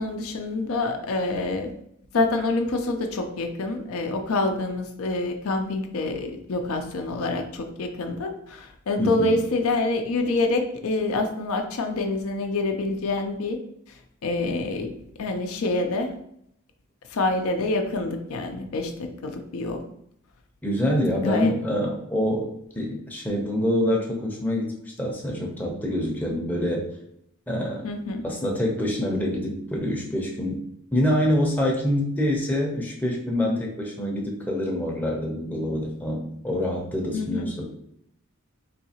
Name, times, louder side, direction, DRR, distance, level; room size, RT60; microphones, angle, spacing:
voice 1, 0.0-1.7 2.1-13.6 14.2-14.9 15.2-16.1 17.1-19.8 21.2-21.5 27.8-28.2 37.1-37.5, left 2 dB, 80° left, 5 dB, 0.5 m, -26 dB
voice 2, 9.0-9.4 20.6-22.5 22.7-24.7 25.0-26.9 27.5-27.8 28.2-30.6 30.9-37.6, left 1 dB, 10° left, -2 dB, 0.6 m, -26 dB
4.0 x 2.7 x 2.8 m, 0.72 s
head